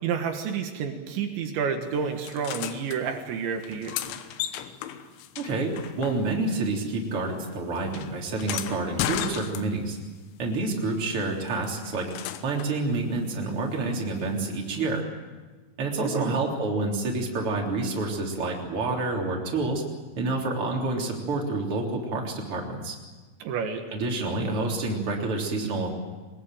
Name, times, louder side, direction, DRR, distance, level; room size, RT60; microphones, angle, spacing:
voice 1, 0.0-3.9 16.0-16.4 23.4-23.8, right 6 dB, 75° right, 4 dB, 3.8 m, -30 dB
sound 1, 2.2-3.0 3.6-6.6 6.8-10.0 11.5-12.8 14.7-14.8, left 11 dB, 85° left, 3.5 m, -35 dB
voice 2, 5.4-5.7 6.0-10.0 10.4-12.1 12.4-15.1 15.8-19.8 20.2-23.0 23.9-25.9, right 3 dB, 30° right, -1 dB, 3.9 m, -28 dB
22.0 x 21.5 x 9.0 m, 1.3 s
omnidirectional pair, 5.3 m